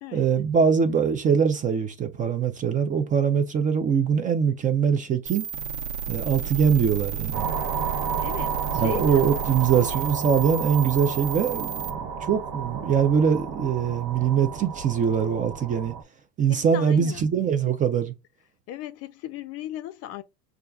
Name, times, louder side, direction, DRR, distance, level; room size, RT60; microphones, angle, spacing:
voice 1, 0.1-5.5 6.1-7.5 8.7-15.9 16.4-18.1, right 7 dB, 25° right, 0.3 m, -23 dB
sound 1, 5.3-11.9, right 7 dB, 85° right, 1.1 m, -32 dB
sound 2, 7.3-16.0, right 6 dB, 60° right, 1.2 m, -32 dB
voice 2, 7.9-9.3 16.5-17.2 18.7-20.2, left 13 dB, 45° left, 0.5 m, -37 dB
6.5 x 2.4 x 2.3 m
supercardioid pair, 125°, 35 cm